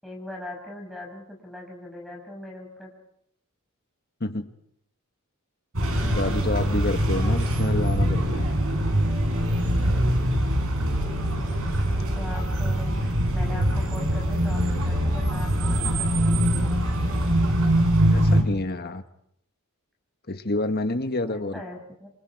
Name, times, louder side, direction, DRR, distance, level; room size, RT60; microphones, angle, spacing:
voice 1, 0.0-2.9 11.8-16.8 21.3-22.1, left 1 dB, ahead, 1 dB, 6.1 m, -40 dB
sound 1, 5.7-18.4, equal, 70° right, 4.7 m, -23 dB
voice 2, 6.0-8.5 18.1-19.0 20.3-21.6, left 2 dB, 45° left, 8 dB, 1.4 m, -28 dB
28.0 x 27.5 x 4.8 m, 0.72 s
head